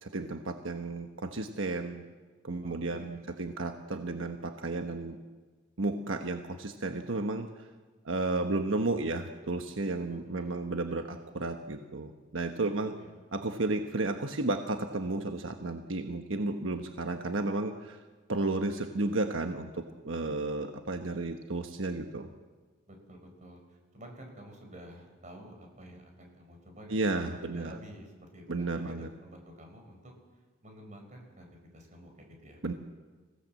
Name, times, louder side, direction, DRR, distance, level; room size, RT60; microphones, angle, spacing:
voice 1, 0.0-2.0 2.4-5.2 5.8-7.5 8.0-12.9 13.3-18.0 18.3-22.3 26.9-27.8 28.5-29.1 32.6-32.7, right 2 dB, 85° right, 5 dB, 1.2 m, -33 dB
voice 2, 2.6-3.3 8.5-8.9 10.1-10.6 13.0-13.5 22.9-30.1 30.6-32.6, equal, 40° right, 3 dB, 4.9 m, -51 dB
26.0 x 17.0 x 7.7 m, 1.3 s
head